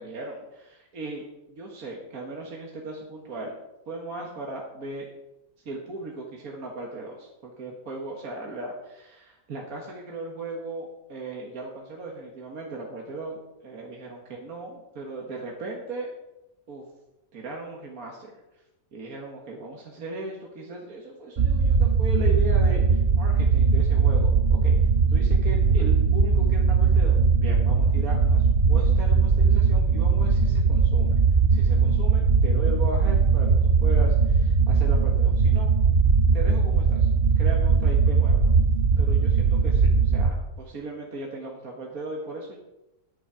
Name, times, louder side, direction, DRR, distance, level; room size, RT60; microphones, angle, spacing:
voice 1, 0.0-3.5 3.9-5.1 5.7-16.1 16.7-16.9 17.3-18.4 18.9-31.1 31.5-35.7 36.3-37.1 37.4-38.4 39.0-42.6, right 2 dB, 70° right, -1 dB, 2.0 m, -37 dB
sound 1, 21.4-40.3, right 5 dB, 45° right, 0.9 m, -20 dB
11.0 x 10.0 x 4.9 m, 0.95 s
omnidirectional pair, 1.6 m